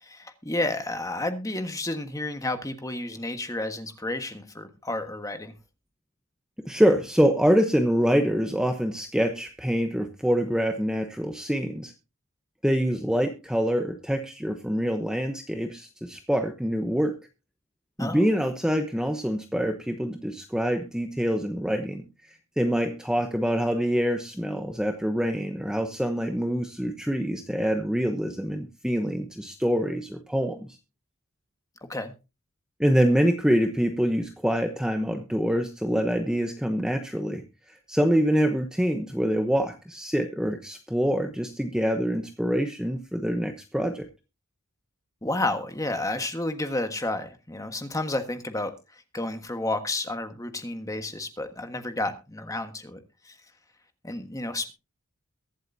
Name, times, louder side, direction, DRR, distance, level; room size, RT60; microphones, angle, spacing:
voice 1, 0.0-5.5 18.0-18.2 31.9-32.1 45.2-48.7 49.1-53.0 53.2-53.3 54.0-54.7, left 2 dB, 15° left, 7 dB, 1.4 m, -31 dB
voice 2, 6.6-11.9 12.6-17.2 18.0-22.0 22.3-30.7 32.8-37.4 37.7-44.1, equal, 5° right, 5 dB, 0.9 m, -25 dB
23.0 x 7.8 x 2.7 m, 0.28 s
head